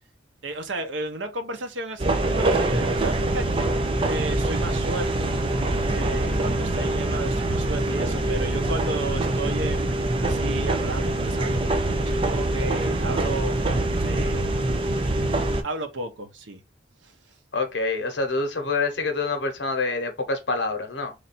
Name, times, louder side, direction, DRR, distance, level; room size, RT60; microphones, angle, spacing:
voice 1, 0.4-3.7 4.1-5.3 5.9-13.6 14.0-15.1 15.6-16.6 17.0-17.1, right 2 dB, 85° right, 0.8 m, -34 dB
sound 1, 2.0-15.6, right 2 dB, 30° right, 0.5 m, -24 dB
voice 2, 17.5-21.1, left 3 dB, 75° left, 0.9 m, -26 dB
3.2 x 2.6 x 4.1 m
head